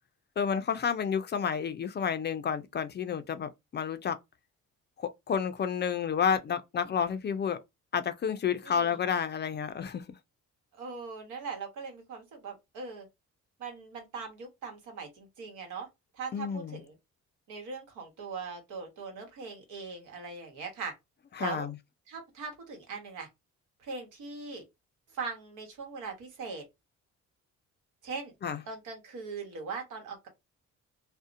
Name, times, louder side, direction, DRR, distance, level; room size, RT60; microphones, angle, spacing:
voice 1, 0.4-4.2 5.3-7.6 7.9-10.0 16.3-16.8 21.4-21.7 28.4-28.6, left 7 dB, 35° left, 0.4 m, -30 dB
voice 2, 8.6-9.0 10.7-13.1 13.6-15.9 16.1-16.9 17.5-20.9 21.4-21.7 22.1-23.3 23.8-24.6 25.1-26.6 28.0-28.3 28.7-30.3, right 4 dB, 85° right, 1.0 m, -40 dB
2.6 x 2.1 x 2.5 m
cardioid pair, 90°, 30 cm